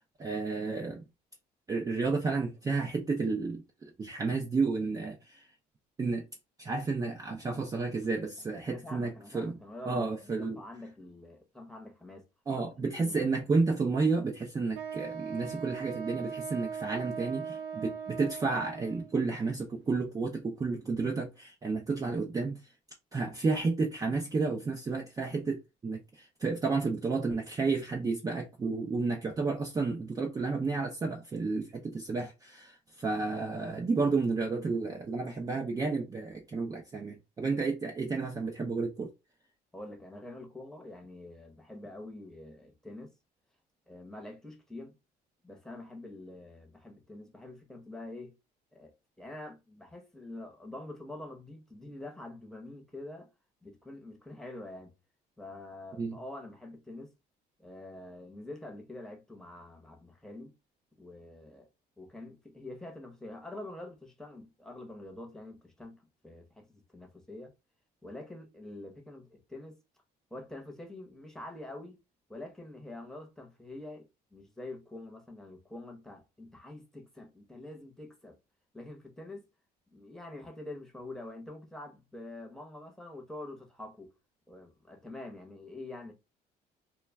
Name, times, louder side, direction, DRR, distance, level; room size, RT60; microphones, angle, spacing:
voice 1, 0.2-1.0 1.7-5.5 6.0-6.3 6.6-9.6 9.9-10.6 12.5-22.7 23.1-39.1 56.0-56.2, right 4 dB, 20° right, 0.4 m, -31 dB
voice 2, 8.6-12.3 12.5-13.3 39.7-43.1 43.9-45.0 45.4-48.4 48.7-53.3 53.6-54.9 55.4-57.1 57.6-60.6 61.0-61.7 62.0-67.5 68.0-69.8 70.3-72.0 72.3-78.4 78.7-79.5 79.9-84.1 84.5-86.1, left 2 dB, 5° left, 0.8 m, -46 dB
Wind instrument woodwind instrument, 14.7-19.2, right 7 dB, 75° right, 0.6 m, -39 dB
2.2 x 2.1 x 3.3 m
cardioid pair, 110°, 17 cm